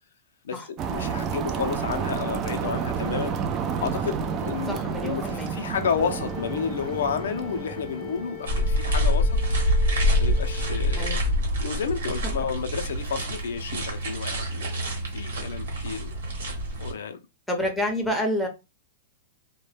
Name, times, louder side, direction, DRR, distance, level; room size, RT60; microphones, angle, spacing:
sound 1, 0.8-8.8, right 6 dB, 30° right, 0.3 m, -30 dB
voice 1, 0.9-3.3 3.8-9.3 10.2-11.1 11.6-14.9 15.1-16.1 16.8-17.2, left 6 dB, 85° left, 0.4 m, -31 dB
voice 2, 4.7-5.5 11.0-11.2 17.5-18.5, left 1 dB, ahead, 0.7 m, -28 dB
Wind instrument woodwind instrument, 6.0-11.1, left 13 dB, 45° left, 0.6 m, -42 dB
sound 2, 8.5-16.9, equal, 85° right, 1.1 m, -26 dB
2.2 x 2.1 x 3.1 m
hypercardioid pair, 150°, 0 cm